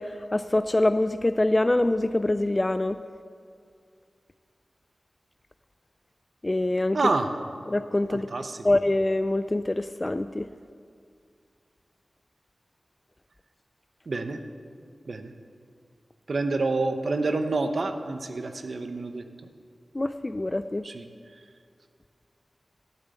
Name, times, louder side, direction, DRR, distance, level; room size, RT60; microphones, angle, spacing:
voice 1, 0.0-3.0 6.4-7.0 7.7-8.3 8.6-10.5 19.9-20.8, left 1 dB, 25° left, 11 dB, 0.3 m, -25 dB
voice 2, 6.9-7.3 8.1-8.6 14.1-14.4 15.1-15.3 16.3-19.2 20.8-21.0, right 3 dB, 65° right, 7 dB, 0.8 m, -28 dB
12.0 x 6.5 x 8.3 m, 2.2 s
wide cardioid pair, 85°, 0 cm